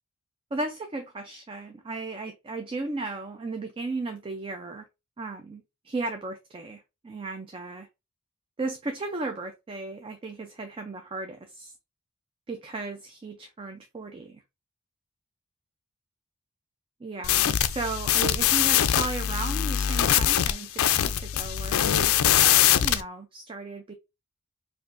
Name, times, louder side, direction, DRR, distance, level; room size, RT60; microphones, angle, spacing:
voice 1, 0.5-4.8 5.2-7.9 8.6-11.7 12.5-14.4 17.0-22.1 22.8-23.9, right 3 dB, 25° right, 0.4 m, -35 dB
sound 1, 17.2-23.0, left 11 dB, 65° left, 0.4 m, -22 dB
4.5 x 2.5 x 2.5 m
head